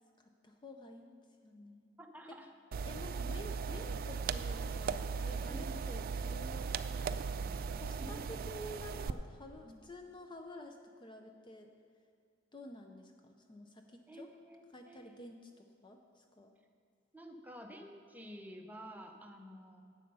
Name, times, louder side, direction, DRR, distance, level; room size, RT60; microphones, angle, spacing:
voice 1, 0.2-1.2 1.4-1.9 2.3-2.4 2.8-6.8 7.7-11.7 12.5-14.3 14.7-16.5, left 1 dB, 25° left, 4 dB, 0.5 m, -51 dB
voice 2, 2.0-2.5 5.5-5.8 8.0-8.2 9.6-9.8 14.1-15.2 17.1-19.8, equal, 10° right, 3 dB, 0.7 m, -50 dB
sound 1, 2.7-9.1, right 5 dB, 45° right, 0.3 m, -38 dB
10.5 x 7.6 x 5.4 m, 2.2 s
head